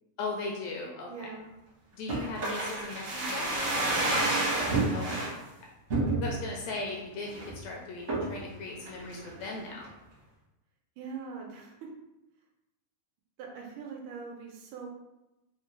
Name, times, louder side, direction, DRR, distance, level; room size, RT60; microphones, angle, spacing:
voice 1, 0.2-1.3 1.9-3.5 4.9-5.2 5.6-5.7 6.2-9.9, left 3 dB, 80° left, -1 dB, 1.6 m, -38 dB
voice 2, 1.1-1.5 4.0-4.4 11.0-11.9 13.4-14.9, right 5 dB, 85° right, 0 dB, 2.2 m, -42 dB
sound 1, 2.1-5.3 5.9-6.5 6.9-7.0 7.3-7.6 8.1-8.4 8.9-9.6 9.8-9.9, right 2 dB, 50° right, 0.8 m, -29 dB
5.2 x 2.1 x 3.1 m, 0.96 s
omnidirectional pair, 3.4 m